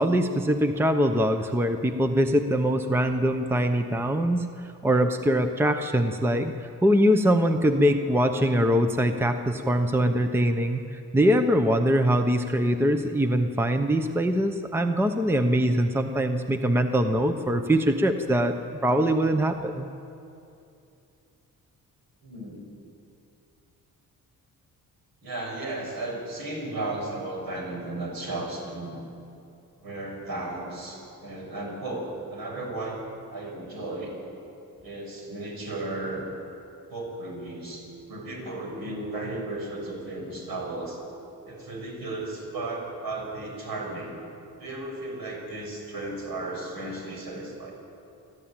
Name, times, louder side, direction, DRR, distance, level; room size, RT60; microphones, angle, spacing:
voice 1, 0.0-19.9, equal, 5° right, 7 dB, 0.8 m, -23 dB
voice 2, 22.2-22.6 25.2-29.0 29.8-33.0 33.3-34.2 34.8-36.3 36.9-41.0 41.5-44.2 44.6-47.7, right 2 dB, 70° right, 0 dB, 6.5 m, -35 dB
28.5 x 12.5 x 8.9 m, 2.7 s
cardioid pair, 135°, 38 cm